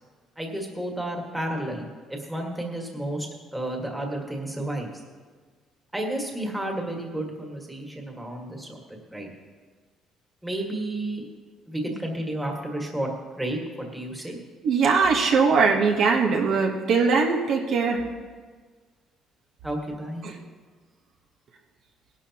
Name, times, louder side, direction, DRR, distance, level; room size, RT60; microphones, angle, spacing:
voice 1, 0.4-4.9 5.9-8.8 9.1-9.3 10.4-11.2 11.7-14.4 19.6-20.3, right 1 dB, 5° right, 0 dB, 1.7 m, -31 dB
voice 2, 14.6-18.0 20.2-20.4, right 5 dB, 55° right, 1 dB, 1.1 m, -21 dB
19.0 x 11.5 x 2.9 m, 1.5 s
cardioid pair, 155°, 0 cm